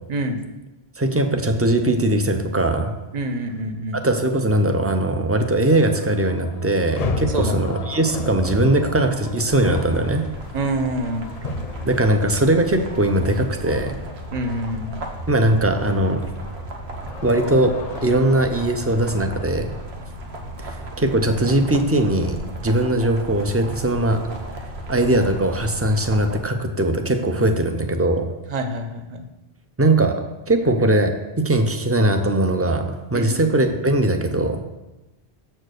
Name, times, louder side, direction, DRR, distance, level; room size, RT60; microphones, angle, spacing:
voice 1, 0.1-0.4 3.1-4.0 7.3-7.6 10.5-11.3 14.3-15.0 28.5-29.2 33.1-33.3, right 1 dB, 45° right, 6 dB, 0.8 m, -26 dB
voice 2, 1.0-2.9 4.0-10.2 11.8-13.9 15.3-16.2 17.2-17.7 18.0-19.7 20.6-22.4 22.6-24.2 24.9-28.2 29.8-30.1 30.5-32.8 33.1-34.6, right 1 dB, 20° right, 6 dB, 0.5 m, -20 dB
sound 1, 5.7-15.2 15.5-19.5, left 3 dB, 45° left, 0.6 m, -34 dB
sound 2, 9.5-26.4, right 1 dB, 85° right, 1.2 m, -35 dB
7.2 x 4.4 x 6.4 m, 1.0 s
omnidirectional pair, 1.0 m